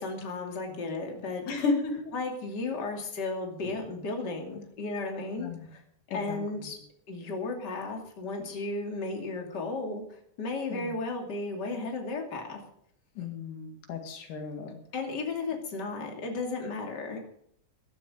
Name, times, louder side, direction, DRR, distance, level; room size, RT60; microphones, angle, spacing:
voice 1, 0.0-1.4 2.1-5.8 6.1-6.8 7.1-10.0 10.4-12.6 13.2-13.3 14.9-17.2, left 3 dB, 35° left, 2 dB, 3.1 m, -34 dB
voice 2, 1.5-2.1 5.4-5.7 6.1-6.7 10.7-11.0 13.2-14.8, left 4 dB, 85° left, 4 dB, 3.7 m, -33 dB
14.5 x 12.5 x 5.1 m, 0.68 s
omnidirectional pair, 3.6 m